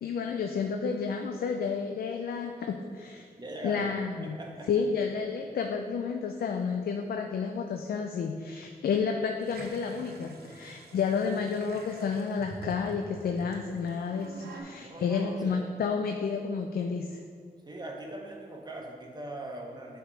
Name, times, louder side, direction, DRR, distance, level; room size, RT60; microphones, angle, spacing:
voice 1, 0.0-3.3 3.6-4.4 4.7-17.2, left 5 dB, 70° left, 4 dB, 0.4 m, -31 dB
voice 2, 3.4-3.9 4.2-4.8 14.7-15.6 17.6-20.0, right 1 dB, 25° right, 0 dB, 1.2 m, -41 dB
sound 1, 9.4-14.6, right 3 dB, 80° right, 0.8 m, -47 dB
7.1 x 3.5 x 5.0 m, 2.1 s
cardioid pair, 55°, 16 cm